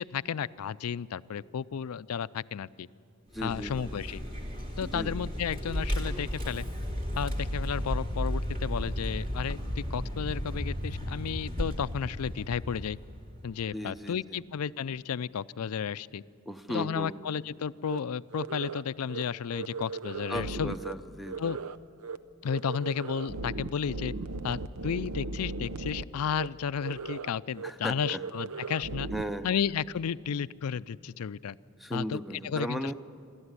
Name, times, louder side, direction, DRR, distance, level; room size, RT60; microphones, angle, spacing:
voice 1, 0.0-2.9 3.4-4.2 4.8-6.7 7.2-13.0 13.4-16.2 16.7-20.7 21.4-21.6 22.4-24.1 24.4-29.1 29.4-31.6 31.9-32.9, left 7 dB, 90° left, 17 dB, 0.4 m, -33 dB
voice 2, 3.3-3.9 4.9-5.1 13.7-14.4 16.5-17.2 20.3-21.5 27.6-28.2 29.1-29.6 31.8-32.9, equal, ahead, 10 dB, 0.6 m, -36 dB
Vehicle, 3.3-13.7, equal, 40° right, 2.8 m, -34 dB
sound 1, 17.8-18.0 18.3-18.8 19.1-19.2 19.5-20.9 21.2-21.8 22.0-22.2 22.4-26.0 26.3-26.5 26.8-27.3 27.6-27.7 28.0-29.2, right 3 dB, 85° right, 0.7 m, -37 dB
27.0 x 13.0 x 9.7 m, 2.3 s
head